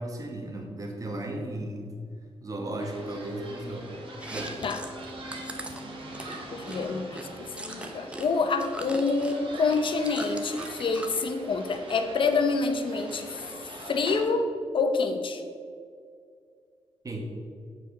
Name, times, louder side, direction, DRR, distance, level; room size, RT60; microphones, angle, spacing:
voice 1, 0.0-2.0 2.4-3.9 4.3-4.5 17.0-17.2, right 1 dB, 35° right, 1 dB, 1.6 m, -35 dB
sound 1, 2.8-14.3, right 1 dB, 60° right, 1.8 m, -43 dB
Chewing mastication, 4.1-8.3 8.5-11.2 11.6-12.4 12.6-13.5, right 1 dB, 10° right, 0.9 m, -41 dB
voice 2, 6.5-13.4 13.9-14.5 14.7-15.4, left 4 dB, 55° left, 6 dB, 0.9 m, -27 dB
7.7 x 4.7 x 6.7 m, 2.2 s
cardioid pair, 105°, 10 cm